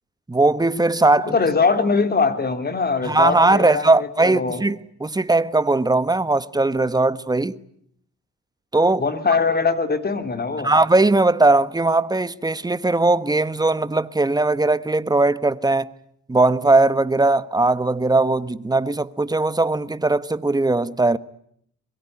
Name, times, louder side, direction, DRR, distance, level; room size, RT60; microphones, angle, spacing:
voice 1, 0.3-1.4 3.0-7.6 8.7-9.1 10.6-15.9 16.3-21.2, right 2 dB, 15° right, 1.2 m, -19 dB
voice 2, 1.2-4.6 9.0-10.7, left 4 dB, 30° left, 3.6 m, -22 dB
24.0 x 22.0 x 9.7 m
cardioid pair, 90°, 30 cm